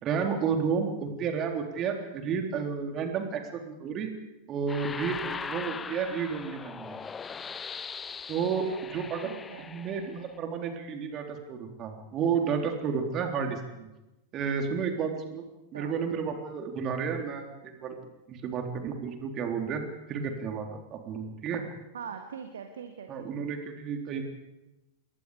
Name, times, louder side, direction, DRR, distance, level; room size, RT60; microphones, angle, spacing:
voice 1, 0.0-4.1 4.5-7.0 8.3-8.6 8.9-9.3 9.6-13.9 14.3-15.4 15.7-17.9 18.3-19.8 20.1-21.6 23.1-24.2, right 6 dB, 30° right, 3 dB, 3.9 m, -31 dB
sound 1, 4.7-10.4, left 6 dB, 20° left, 0.9 m, -40 dB
voice 2, 8.4-9.7 15.7-16.0 21.9-23.5, right 7 dB, 65° right, 6 dB, 1.8 m, -43 dB
28.5 x 22.0 x 5.2 m, 1.0 s
figure-of-eight pair, 90°, 0 cm